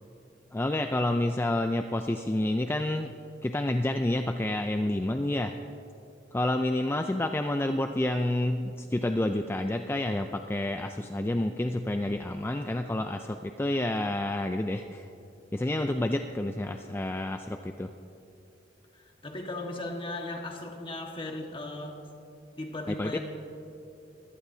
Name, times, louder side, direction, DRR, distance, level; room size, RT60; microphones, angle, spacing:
voice 1, 0.5-3.1 3.4-5.5 6.3-15.1 15.5-17.9 22.9-23.2, left 1 dB, 15° left, 6 dB, 0.4 m, -29 dB
voice 2, 18.9-22.0 22.6-23.2, left 2 dB, 30° left, 1 dB, 1.5 m, -37 dB
23.0 x 17.0 x 2.8 m, 2.7 s
head